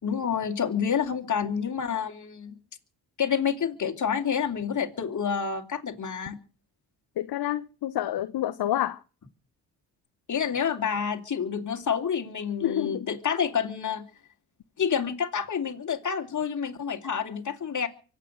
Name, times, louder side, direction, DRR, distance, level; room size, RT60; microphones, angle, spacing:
voice 1, 0.0-2.5 3.2-6.3 10.3-14.0 14.8-17.9, left 7 dB, 45° left, 2.8 m, -28 dB
voice 2, 7.2-9.0 12.6-13.1, left 12 dB, 65° left, 1.0 m, -28 dB
24.5 x 8.5 x 6.5 m
cardioid pair, 90°, 40 cm